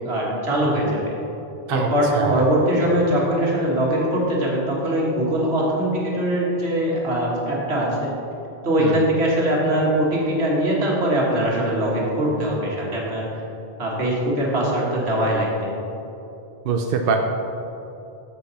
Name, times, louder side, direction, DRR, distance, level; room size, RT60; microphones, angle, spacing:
voice 1, 0.0-0.9 1.7-8.1 8.6-13.4 13.8-15.7, right 1 dB, 90° right, -4 dB, 2.0 m, -22 dB
voice 2, 16.7-17.2, right 6 dB, 65° right, 3 dB, 0.8 m, -23 dB
7.5 x 6.9 x 5.7 m, 2.9 s
omnidirectional pair, 1.1 m